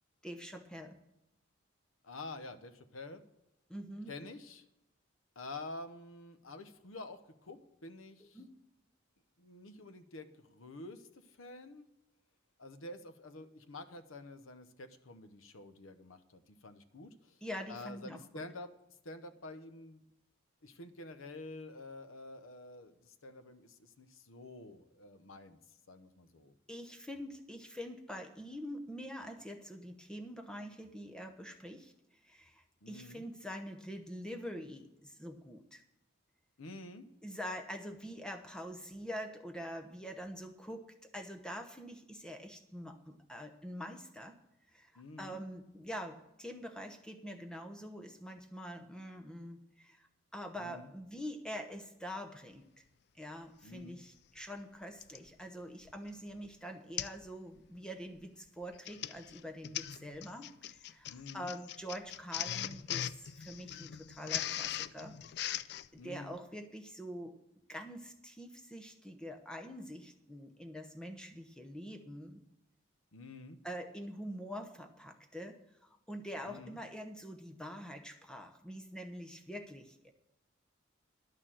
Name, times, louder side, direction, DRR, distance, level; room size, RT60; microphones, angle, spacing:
voice 1, 0.2-0.9 3.7-4.1 8.3-8.5 17.4-18.4 26.7-31.9 32.2-35.8 37.2-44.3 44.7-50.1 50.3-52.8 53.2-65.6 66.0-67.3 67.7-72.4 73.6-75.6 75.8-80.1, equal, 5° left, 5 dB, 0.8 m, -45 dB
voice 2, 2.0-3.2 4.1-4.6 5.4-8.4 9.4-11.9 12.6-17.4 17.7-18.7 19.0-20.0 20.6-25.6 25.9-26.6 32.8-33.2 36.6-37.1 45.0-45.4 50.6-50.9 53.6-54.0 61.0-61.5 65.9-66.4 73.1-73.6 76.5-76.8, left 2 dB, 90° left, 10 dB, 0.9 m, -48 dB
Printer, 53.8-53.9 55.0-55.3 55.9-56.1 56.4-56.5 57.0-57.2 57.6-57.8 58.6-65.9, left 11 dB, 55° left, 0.3 m, -40 dB
11.0 x 6.6 x 7.4 m, 0.87 s
head